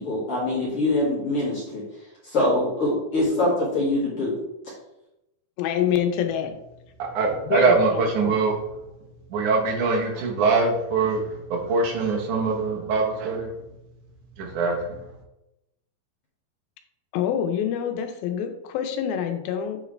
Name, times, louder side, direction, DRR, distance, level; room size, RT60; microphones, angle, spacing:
voice 1, 0.0-1.8 2.2-4.3, left 1 dB, 45° left, -7 dB, 2.3 m, -24 dB
voice 2, 5.6-6.5 7.4-8.3 17.1-19.8, left 8 dB, 80° left, 6 dB, 2.6 m, -26 dB
voice 3, 7.0-8.5 9.3-13.5 14.4-15.1, right 4 dB, 65° right, 0 dB, 2.4 m, -23 dB
8.0 x 4.7 x 3.3 m, 0.92 s
omnidirectional pair, 4.3 m